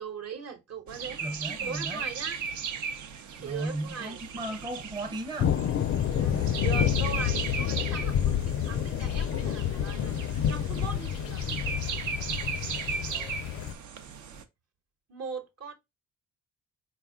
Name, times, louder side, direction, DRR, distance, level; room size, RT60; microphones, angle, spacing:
voice 1, 0.0-2.4 3.3-4.2 6.1-8.2 8.5-10.2 10.5-11.4 15.1-15.7, right 6 dB, 55° right, 1.1 m, -39 dB
sound 1, 0.9-14.4, right 6 dB, 75° right, 0.7 m, -37 dB
voice 2, 1.2-2.1 3.4-5.6 6.3-6.6 13.0-13.4, right 1 dB, 15° right, 0.5 m, -36 dB
sound 2, 5.4-13.7, left 10 dB, 50° left, 0.4 m, -29 dB
4.3 x 2.3 x 3.5 m
cardioid pair, 90°, 30 cm